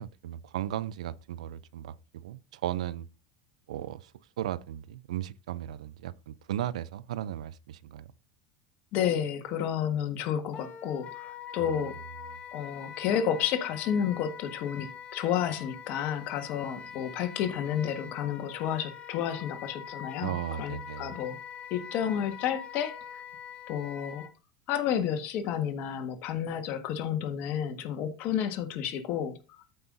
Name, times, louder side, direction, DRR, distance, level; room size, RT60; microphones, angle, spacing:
voice 1, 0.0-3.1 3.7-8.1 11.6-11.8 20.2-21.1, right 12 dB, 90° right, 0.5 m, -36 dB
voice 2, 8.9-12.0 12.5-21.4 21.7-23.2 23.7-24.3 24.7-29.6, left 9 dB, 55° left, 1.5 m, -31 dB
Wind instrument woodwind instrument, 10.5-24.3, left 7 dB, 40° left, 1.0 m, -44 dB
14.0 x 5.4 x 2.6 m
supercardioid pair, 105°, 3 cm